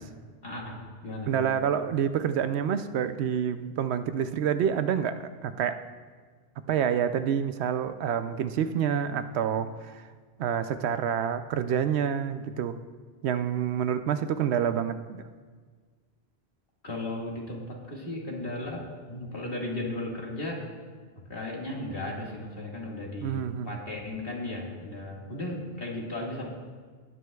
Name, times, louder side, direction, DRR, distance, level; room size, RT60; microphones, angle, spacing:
voice 1, 0.4-1.6 16.8-20.7 21.3-23.4 23.6-26.5, left 1 dB, 60° left, -2 dB, 2.1 m, -35 dB
voice 2, 1.3-5.8 6.7-10.0 10.4-12.8 13.2-15.2 23.2-23.8, right 8 dB, 80° right, 10 dB, 0.8 m, -28 dB
18.0 x 9.4 x 2.3 m, 1.5 s
omnidirectional pair, 1.1 m